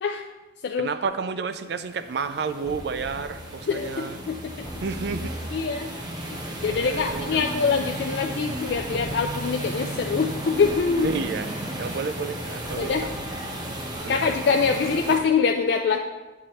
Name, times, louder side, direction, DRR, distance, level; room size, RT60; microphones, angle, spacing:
voice 1, 0.8-4.2 4.8-5.3 6.7-7.6 11.0-11.5 11.8-13.1 14.0-14.3, right 5 dB, 60° right, 10 dB, 0.4 m, -31 dB
sound 1, 1.8-15.2, right 1 dB, 25° right, 0.9 m, -34 dB
sound 2, 2.6-3.3 4.6-5.2 6.7-7.2 8.6-9.2 10.6-11.2 12.6-13.4, equal, 20° left, 1.1 m, -41 dB
voice 2, 5.5-5.9 6.2-6.3 6.6-11.1 12.8-13.1 14.1-16.0, left 5 dB, 65° left, 3 dB, 0.3 m, -24 dB
8.9 x 4.7 x 2.9 m, 1.2 s
head